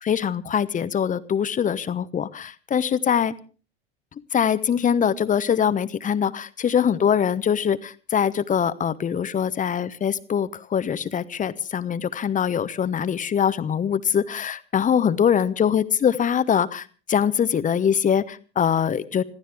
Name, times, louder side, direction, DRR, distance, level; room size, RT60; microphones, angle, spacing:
voice 1, 0.0-3.3 4.3-19.2, left 8 dB, 25° left, 15 dB, 1.0 m, -23 dB
26.5 x 15.0 x 3.5 m, 0.37 s
figure-of-eight pair, 80°, 33 cm